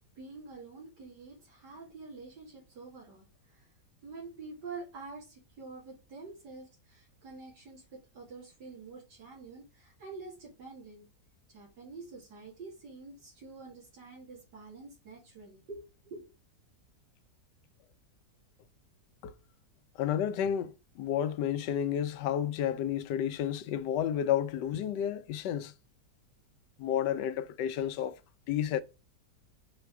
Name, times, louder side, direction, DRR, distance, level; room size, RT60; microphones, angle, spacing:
voice 1, 0.2-3.7 4.0-11.1 11.5-16.3, right 4 dB, 85° right, 2.7 m, -47 dB
voice 2, 20.0-25.7 26.8-28.2 28.5-28.8, left 10 dB, 85° left, 1.2 m, -31 dB
5.1 x 4.0 x 4.6 m
omnidirectional pair, 1.8 m